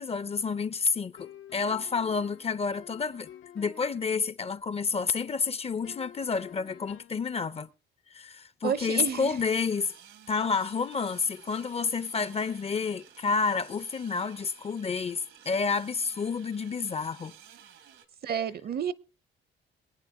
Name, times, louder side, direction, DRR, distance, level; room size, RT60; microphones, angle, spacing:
voice 1, 0.0-3.3 3.5-7.7 8.1-9.9 10.3-17.3, left 5 dB, 30° left, 0.6 m, -29 dB
sound 1, 1.2-4.2 5.8-7.3, left 11 dB, 80° left, 0.8 m, -50 dB
voice 2, 8.6-9.4 18.2-18.9, right 8 dB, 50° right, 0.7 m, -30 dB
sound 2, 9.3-18.1, right 9 dB, 80° right, 1.5 m, -54 dB
22.5 x 9.1 x 3.6 m
cardioid pair, 90°, 20 cm